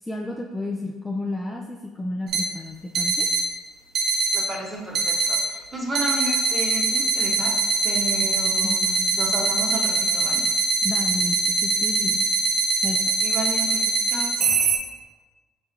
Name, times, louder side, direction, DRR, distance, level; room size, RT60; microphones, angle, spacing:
voice 1, 0.0-3.3 8.4-8.8 10.8-12.2 12.8-13.1, left 2 dB, 10° left, -1 dB, 0.4 m, -32 dB
sound 1, 2.3-2.4 3.0-3.4 4.0-4.4 5.0-5.4 6.0-14.8, right 4 dB, 60° right, 0.5 m, -22 dB
voice 2, 4.3-7.6 7.8-10.4 13.2-14.4, right 1 dB, 20° right, -1 dB, 0.9 m, -32 dB
5.1 x 2.3 x 2.9 m, 1.3 s
supercardioid pair, 70°, 0 cm